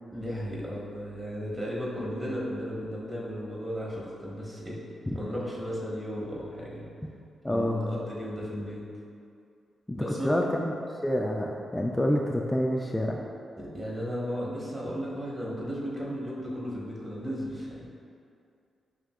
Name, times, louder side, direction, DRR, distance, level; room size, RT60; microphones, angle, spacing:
voice 1, 0.1-4.8 5.1-6.8 7.5-8.8 9.9-10.5 13.6-17.9, equal, 30° right, -5 dB, 1.2 m, -35 dB
voice 2, 7.4-8.0 9.9-10.7 11.0-13.2, left 1 dB, 15° left, 0 dB, 0.3 m, -27 dB
5.2 x 2.8 x 2.4 m, 2.4 s
hypercardioid pair, 40°, 0 cm